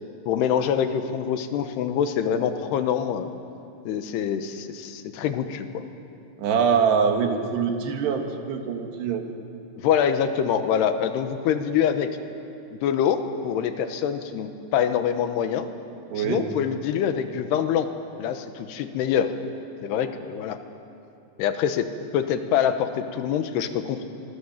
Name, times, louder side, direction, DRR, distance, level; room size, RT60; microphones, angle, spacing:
voice 1, 0.3-3.3 3.9-5.8 9.8-12.1 12.8-15.7 16.1-17.9 18.2-19.3 19.8-20.6 21.4-21.9 22.1-24.0, left 8 dB, 80° left, 8 dB, 3.1 m, -25 dB
voice 2, 6.4-9.2 16.1-16.4, right 6 dB, 75° right, 4 dB, 3.8 m, -23 dB
24.5 x 22.5 x 7.2 m, 2.6 s
omnidirectional pair, 4.9 m